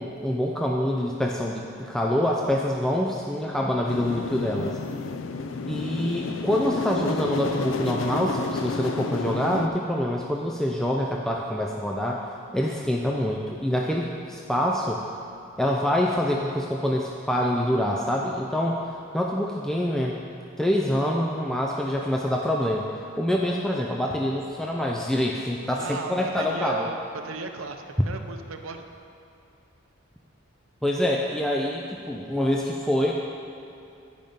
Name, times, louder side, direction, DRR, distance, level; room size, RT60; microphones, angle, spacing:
voice 1, 0.0-4.8 5.7-12.3 12.5-15.0 15.6-18.8 19.1-20.2 20.6-26.9 30.8-33.1, left 1 dB, ahead, -2 dB, 0.4 m, -26 dB
sound 1, 3.9-9.7, left 4 dB, 65° left, 0.4 m, -30 dB
voice 2, 25.8-28.9, right 4 dB, 80° right, 5 dB, 0.6 m, -36 dB
10.5 x 5.2 x 5.2 m, 2.6 s
head